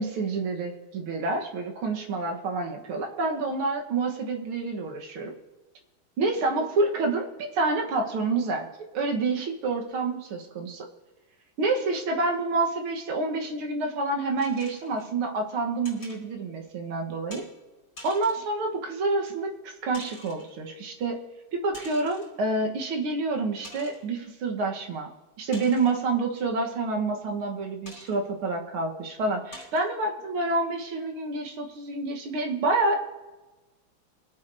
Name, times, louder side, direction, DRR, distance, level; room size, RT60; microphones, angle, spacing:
voice 1, 0.0-5.3 6.2-8.7 8.9-10.9 11.6-17.4 18.0-21.2 21.5-25.1 25.4-33.0, right 3 dB, 90° right, 2 dB, 2.2 m, -28 dB
sound 1, 14.4-15.1 15.8-16.2 17.3-17.5 18.0-18.5 19.3-19.4 19.9-20.5 21.7-22.4 22.9-23.0 23.6-24.1 25.5-26.1 27.9-28.2 28.8-28.9 29.5-29.9, left 1 dB, 50° left, 4.9 m, -46 dB
24.5 x 8.7 x 2.7 m, 1.1 s
omnidirectional pair, 2.3 m